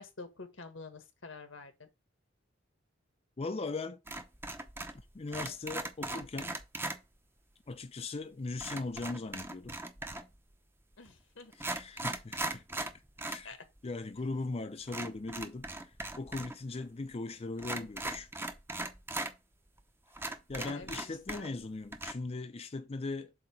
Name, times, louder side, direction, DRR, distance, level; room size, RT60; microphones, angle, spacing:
voice 1, 0.0-1.9 11.0-11.5 13.4-13.6 20.5-21.5, left 3 dB, 90° left, 1.5 m, -48 dB
voice 2, 3.4-4.0 4.9-6.6 7.7-9.8 11.5-12.6 13.3-13.5 13.8-18.3 20.5-23.3, left 3 dB, 30° left, 0.5 m, -39 dB
sound 1, 4.1-5.0 5.3-7.0 8.6-10.4 11.1-11.2 11.5-13.5 13.8-13.9 14.9-16.6 16.8-16.9 17.6-19.3 19.8-19.9 20.2-21.6 21.9-22.1, right 2 dB, 10° right, 0.7 m, -39 dB
7.7 x 2.9 x 5.9 m
head